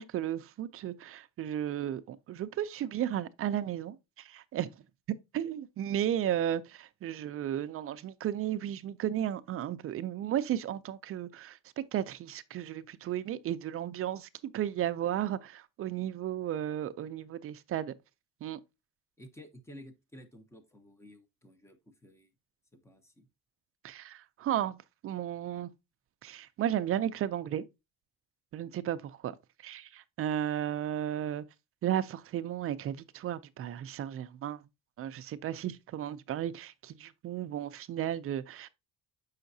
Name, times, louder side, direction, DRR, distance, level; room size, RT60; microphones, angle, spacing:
voice 1, 0.0-4.7 5.1-17.9 18.4-18.6 23.8-24.8 25.0-25.7 26.2-27.6 28.5-29.3 29.6-31.4 31.8-34.6 35.0-38.7, right 11 dB, 40° right, 0.4 m, -34 dB
voice 2, 19.2-22.3 22.7-23.3, equal, 10° left, 0.7 m, -53 dB
7.0 x 5.6 x 2.6 m
cardioid pair, 170°, 34 cm